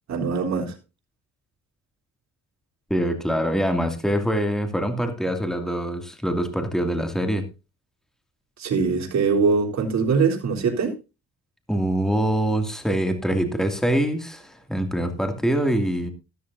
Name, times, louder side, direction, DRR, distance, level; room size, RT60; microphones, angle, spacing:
voice 1, 0.1-0.7 8.6-11.0, right 5 dB, 65° right, 3.8 m, -22 dB
voice 2, 2.9-7.5 11.7-16.1, right 1 dB, ahead, 2.4 m, -24 dB
14.0 x 13.5 x 2.7 m
cardioid pair, 90°, 30 cm